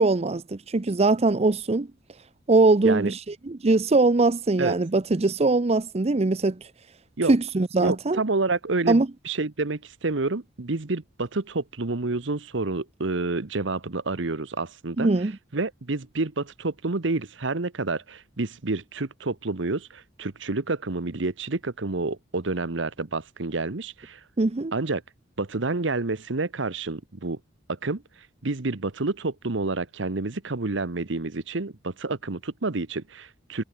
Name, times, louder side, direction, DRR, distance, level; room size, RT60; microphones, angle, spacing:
voice 1, 0.0-1.9 2.5-3.2 3.5-6.6 7.3-8.2 8.9-9.1 15.0-15.3 24.4-24.7, right 3 dB, 35° right, 0.6 m, -21 dB
voice 2, 7.8-24.2 24.7-25.0 25.4-27.4 27.8-28.0 28.4-33.6, right 3 dB, 65° right, 1.1 m, -29 dB
head